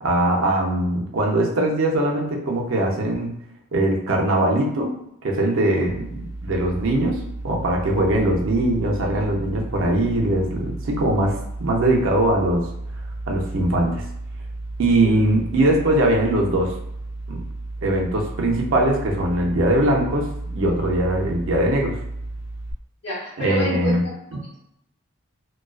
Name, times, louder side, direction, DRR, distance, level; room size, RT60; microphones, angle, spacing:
voice 1, 0.0-3.3 3.7-4.9 5.2-12.6 13.3-14.0 14.8-16.7 17.3-17.4 17.8-22.0 23.4-24.0 24.3-24.4, right 1 dB, 70° right, 0 dB, 0.5 m, -21 dB
sound 1, 5.9-22.7, right 2 dB, 40° left, 0.3 m, -33 dB
voice 2, 23.0-24.2, left 1 dB, 55° left, -5 dB, 1.0 m, -29 dB
2.3 x 2.3 x 2.3 m, 0.76 s
head